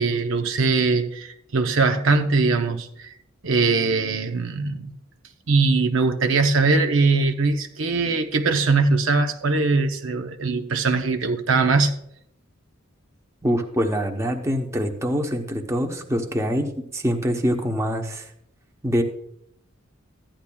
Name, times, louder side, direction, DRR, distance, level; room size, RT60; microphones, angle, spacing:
voice 1, 0.0-3.1 3.4-4.9 5.5-11.9, right 3 dB, 70° right, 0.7 m, -21 dB
voice 2, 13.4-18.3 18.8-19.0, equal, 15° right, 0.9 m, -24 dB
14.5 x 10.0 x 2.3 m
head